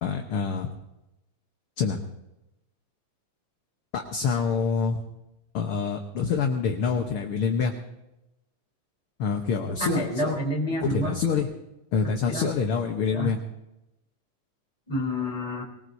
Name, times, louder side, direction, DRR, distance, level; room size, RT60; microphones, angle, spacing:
voice 1, 0.0-0.7 1.8-2.0 3.9-5.0 5.5-7.7 9.2-10.4 10.8-11.5 11.9-13.4, left 5 dB, 60° left, 3 dB, 1.5 m, -26 dB
voice 2, 9.8-11.2 12.0-12.5 13.1-13.3 14.9-15.6, equal, 10° left, -1 dB, 3.2 m, -29 dB
23.0 x 19.5 x 2.7 m, 0.94 s
omnidirectional pair, 3.6 m